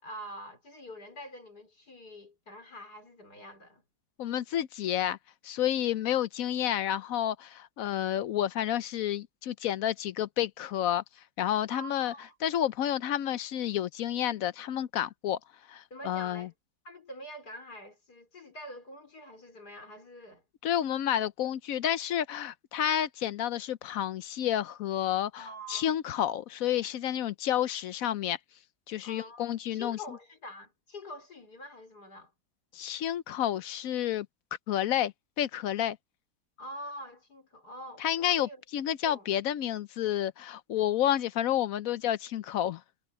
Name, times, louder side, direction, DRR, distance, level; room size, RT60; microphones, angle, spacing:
voice 1, 0.0-3.8 11.7-12.4 15.9-16.5 16.9-20.4 25.4-26.0 29.0-32.3 36.6-39.3, equal, 85° left, 5.3 m, -45 dB
voice 2, 4.2-5.2 5.4-11.0 11.4-12.1 12.4-15.4 15.7-16.5 20.6-28.4 28.9-30.0 32.7-34.3 34.7-36.0 38.0-42.8, left 11 dB, 70° left, 1.0 m, -30 dB
omnidirectional pair, 1.7 m